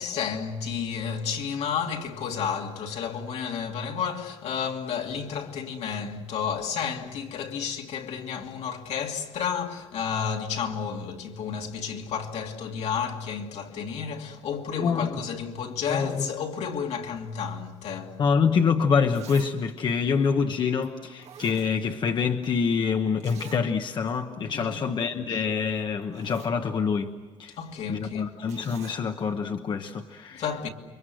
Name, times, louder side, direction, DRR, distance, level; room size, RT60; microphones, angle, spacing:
voice 1, 0.0-18.2 24.5-24.8 27.6-28.3 30.3-30.7, left 7 dB, 75° left, 2.7 m, -31 dB
voice 2, 14.7-15.2 15.9-16.3 18.2-27.1 27.4-27.6 27.9-30.4, left 6 dB, 45° left, 1.1 m, -26 dB
Zipper (clothing), 19.1-19.6 19.9-20.0 20.8-20.9 21.2-22.2 22.4-22.5 23.2-23.7 24.1-24.2 24.5-24.7 25.6-25.7 26.0-26.6 28.5-29.0 29.9-30.0, right 9 dB, 80° right, 2.2 m, -47 dB
29.5 x 24.5 x 7.8 m
cardioid pair, 145°, 11 cm